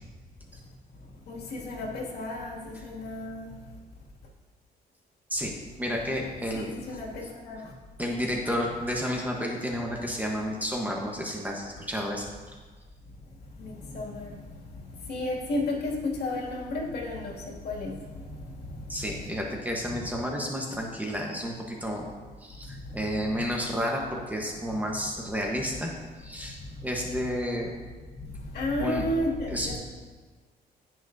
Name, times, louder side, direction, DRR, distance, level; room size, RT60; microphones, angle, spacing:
voice 1, 1.3-3.5 6.5-7.7 13.6-14.5 15.1-19.0 22.7-22.9 23.3-23.4 26.6-26.7 28.2-29.8, left 1 dB, 75° left, -3 dB, 2.3 m, -33 dB
voice 2, 5.8-6.8 8.0-12.3 18.9-22.0 22.4-25.9 26.2-27.7 28.8-29.1 29.5-29.8, equal, 10° right, -1 dB, 1.1 m, -31 dB
17.5 x 6.0 x 2.7 m, 1.4 s
cardioid pair, 125°, 17 cm